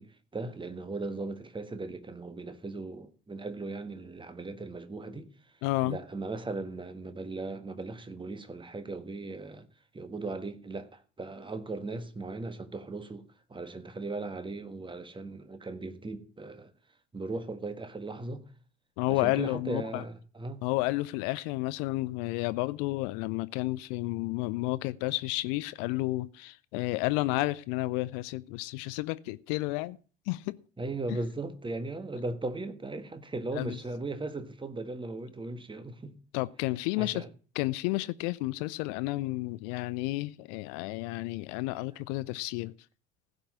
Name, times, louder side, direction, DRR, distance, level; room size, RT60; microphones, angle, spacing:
voice 1, 0.0-5.3 5.8-9.7 9.9-16.7 17.1-18.4 19.1-20.6 30.8-36.2 37.0-37.3, right 3 dB, 15° right, 1.5 m, -38 dB
voice 2, 5.6-6.0 19.0-20.0 20.6-30.0 30.3-30.5 31.1-31.2 33.5-33.8 36.3-37.2 37.6-42.7, left 20 dB, 55° left, 0.6 m, -31 dB
15.5 x 5.4 x 7.3 m
figure-of-eight pair, 60°, 34 cm